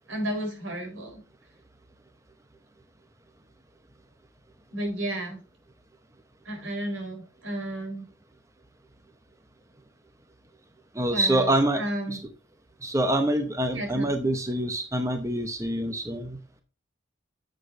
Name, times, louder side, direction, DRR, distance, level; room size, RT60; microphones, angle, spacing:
voice 1, 0.1-1.2 4.7-5.4 6.4-8.0 11.1-11.5 11.8-12.2 13.7-14.1, right 1 dB, 85° right, 4 dB, 4.2 m, -32 dB
voice 2, 10.9-11.8 12.1-12.2 12.8-16.4, right 1 dB, 15° right, 7 dB, 0.8 m, -25 dB
9.8 x 7.7 x 2.6 m, 0.33 s
head